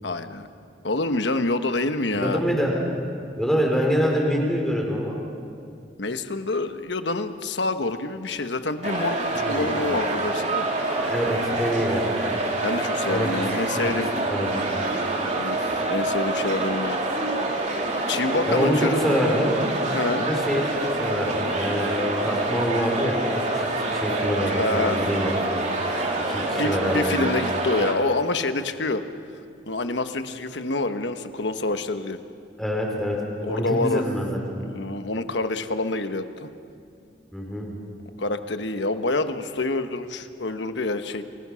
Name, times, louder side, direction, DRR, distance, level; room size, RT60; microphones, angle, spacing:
voice 1, 0.0-0.5 0.8-2.4 6.0-10.7 12.6-14.1 15.3-15.6 15.9-17.0 17.5-17.7 18.1-19.0 19.9-20.3 24.5-25.0 25.7-29.0 29.7-32.2 33.4-34.0 34.6-36.5 38.2-41.2, left 2 dB, 75° left, 9 dB, 1.2 m, -27 dB
voice 2, 2.1-2.8 3.4-5.2 9.4-9.7 11.0-12.1 13.1-13.3 13.7-13.9 14.2-14.6 18.5-19.6 20.2-23.2 23.5-25.5 26.3-27.1 32.6-33.2 33.5-34.4 37.3-37.7, equal, ahead, -1 dB, 4.0 m, -25 dB
sound 1, 8.8-27.9, right 2 dB, 40° right, 2.9 m, -26 dB
29.0 x 21.5 x 6.3 m, 2.3 s
head